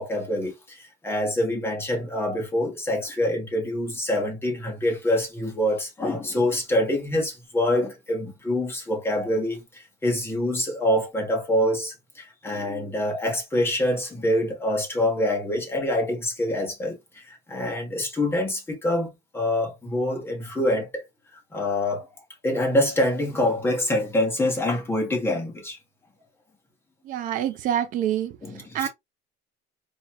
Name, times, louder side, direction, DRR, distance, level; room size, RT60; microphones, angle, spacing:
voice 1, 0.0-21.0 21.5-22.1 22.4-25.8 28.4-28.9, left 1 dB, 10° left, 1.2 m, -25 dB
voice 2, 27.1-28.3 28.7-28.9, right 11 dB, 45° right, 0.4 m, -26 dB
4.1 x 2.4 x 2.9 m
cardioid pair, 165°, 19 cm